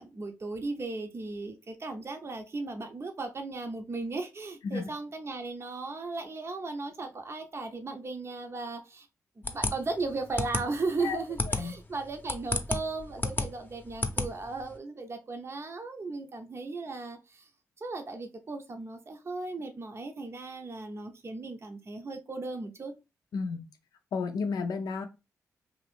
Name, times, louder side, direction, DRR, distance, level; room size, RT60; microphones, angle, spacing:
voice 1, 0.0-9.1 9.4-17.5 17.8-22.9, right 3 dB, 40° right, 0.6 m, -36 dB
sound 1, 9.4-14.8, left 2 dB, 30° left, 0.7 m, -32 dB
voice 2, 11.0-11.7 23.3-23.7 24.1-25.1, left 4 dB, 70° left, 0.5 m, -33 dB
2.7 x 2.4 x 3.3 m
supercardioid pair, 40°, 7 cm